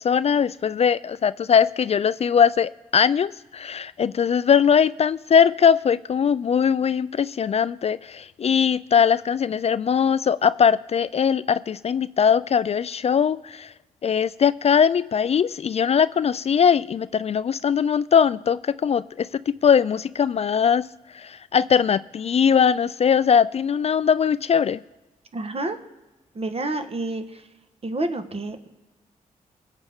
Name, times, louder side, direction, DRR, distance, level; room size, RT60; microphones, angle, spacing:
voice 1, 0.0-13.7 14.0-20.9 21.2-24.8, left 7 dB, 45° left, 17 dB, 0.3 m, -20 dB
voice 2, 25.3-25.8 26.3-27.4 27.8-28.7, right 2 dB, 45° right, 7 dB, 1.5 m, -29 dB
22.5 x 8.1 x 3.7 m, 1.1 s
cardioid pair, 60°, 15 cm